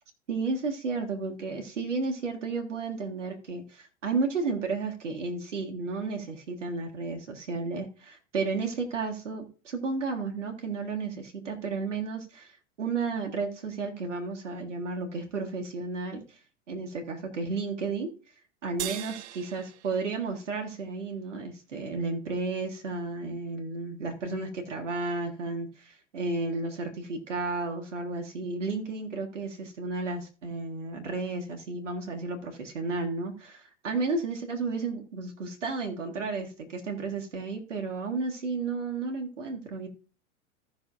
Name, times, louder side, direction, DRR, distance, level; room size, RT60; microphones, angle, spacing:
voice 1, 0.3-16.4 16.7-18.1 18.6-39.9, right 3 dB, 80° right, 3 dB, 1.9 m, -33 dB
sound 1, 18.8-21.4, right 13 dB, 65° right, 0.7 m, -41 dB
15.0 x 6.2 x 2.5 m, 0.35 s
hypercardioid pair, 90°, 36 cm